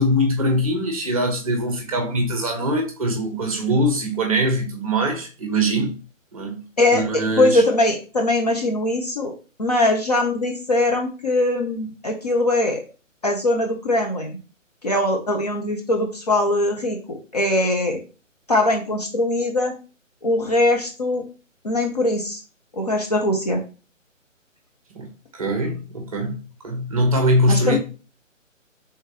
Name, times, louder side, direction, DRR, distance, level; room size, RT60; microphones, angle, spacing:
voice 1, 0.0-5.9 6.3-6.6 6.9-7.6 24.9-27.8, equal, 25° right, 0.9 m, -22 dB
voice 2, 6.8-9.3 9.6-12.8 13.2-14.4 14.8-18.0 18.5-19.7 20.2-21.2 21.6-22.4 22.7-23.6 27.5-27.8, left 1 dB, 30° left, 0.6 m, -21 dB
4.6 x 3.6 x 2.8 m
figure-of-eight pair, 145°, 39 cm